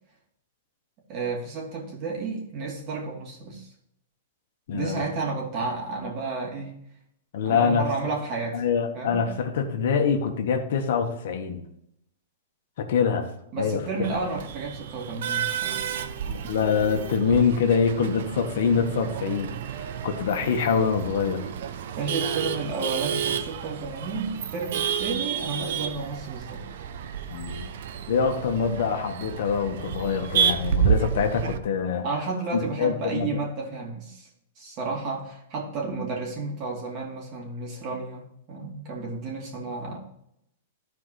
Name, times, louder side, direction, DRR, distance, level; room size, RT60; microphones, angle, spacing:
voice 1, 1.1-3.7 4.7-6.8 7.4-8.7 8.9-9.3 13.5-16.2 21.9-26.6 32.0-34.3 34.6-40.0, right 3 dB, 35° right, -2 dB, 2.7 m, -32 dB
voice 2, 4.7-5.0 7.3-7.8 8.5-11.6 12.8-13.3 13.6-13.8 16.3-19.5 20.0-21.5 27.3-27.6 28.1-32.0 32.5-33.4, left 6 dB, 65° left, 4 dB, 1.3 m, -25 dB
Male speech man speaking / Laughter / Chatter, 14.0-31.6, right 8 dB, 65° right, 0.7 m, -30 dB
13.5 x 4.7 x 3.2 m, 0.76 s
hypercardioid pair, 145°, 0 cm